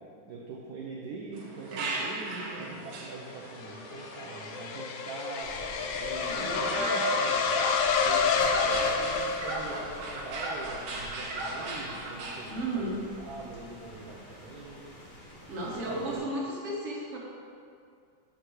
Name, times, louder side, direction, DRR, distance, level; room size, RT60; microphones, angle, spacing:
voice 1, 0.0-5.6 5.9-7.6 8.0-14.9 15.6-16.2, right 3 dB, 60° right, -3 dB, 1.2 m, -43 dB
sound 1, 1.3-12.5, right 2 dB, 85° right, 1.8 m, -37 dB
sound 2, 3.1-10.2, left 5 dB, 75° left, 1.2 m, -29 dB
Rain, 5.4-16.2, equal, 60° left, 2.4 m, -48 dB
voice 2, 6.3-7.2 12.5-13.0 15.5-17.2, right 1 dB, 40° right, -4 dB, 1.5 m, -35 dB
5.7 x 5.1 x 6.3 m, 2.3 s
omnidirectional pair, 2.2 m